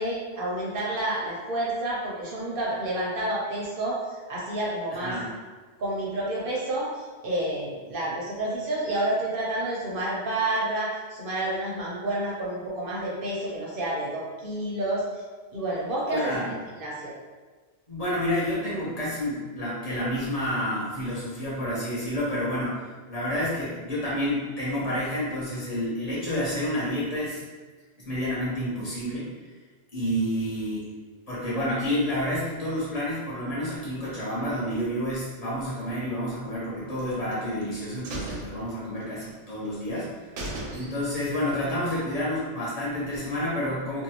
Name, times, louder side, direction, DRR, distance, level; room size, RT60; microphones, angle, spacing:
voice 1, 0.0-4.0 4.3-5.2 5.8-15.2 15.5-17.1, right 1 dB, 60° right, -5 dB, 0.7 m, -29 dB
voice 2, 16.1-16.5 17.9-27.4 28.0-29.3 29.9-30.9 31.3-40.1 40.7-44.0, equal, 35° left, -9 dB, 1.0 m, -29 dB
sound 1, 37.0-37.7 38.0-39.3 39.7-39.8 40.1-40.2 40.4-41.3 41.6-41.7, right 2 dB, 90° right, 0.9 m, -37 dB
2.5 x 2.3 x 2.9 m, 1.4 s
omnidirectional pair, 1.2 m